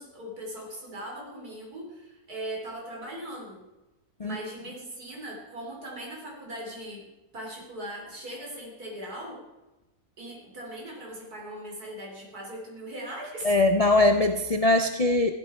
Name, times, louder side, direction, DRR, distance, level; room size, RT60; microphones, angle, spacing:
voice 1, 0.0-3.6 4.2-7.1 7.3-9.4 10.2-13.6, right 1 dB, 80° right, -1 dB, 3.9 m, -39 dB
voice 2, 13.4-15.3, left 2 dB, 50° left, 6 dB, 0.4 m, -21 dB
15.5 x 12.5 x 4.4 m, 1.1 s
omnidirectional pair, 1.6 m